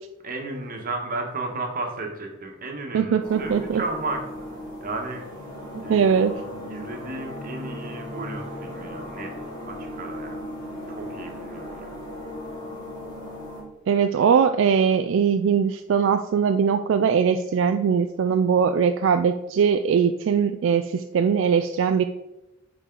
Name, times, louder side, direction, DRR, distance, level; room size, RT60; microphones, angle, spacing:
voice 1, 0.2-5.3 5.8-9.3 9.7-10.4 10.9-11.9, right 2 dB, 50° right, 3 dB, 1.3 m, -34 dB
voice 2, 2.9-3.8 5.7-6.4 13.9-22.0, right 6 dB, 75° right, 8 dB, 0.3 m, -21 dB
sound 1, 3.2-13.6, left 1 dB, 25° left, 2.4 m, -37 dB
9.0 x 4.5 x 3.8 m, 0.96 s
head